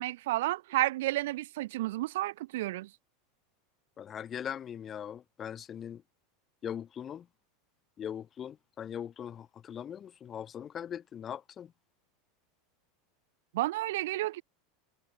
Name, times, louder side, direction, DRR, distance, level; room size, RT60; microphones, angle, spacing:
voice 1, 0.0-2.9 13.5-14.4, right 17 dB, 70° right, 0.6 m, -31 dB
voice 2, 4.0-6.0 6.6-7.2 8.0-11.7, left 9 dB, 20° left, 0.7 m, -40 dB
supercardioid pair, 170°, 0 cm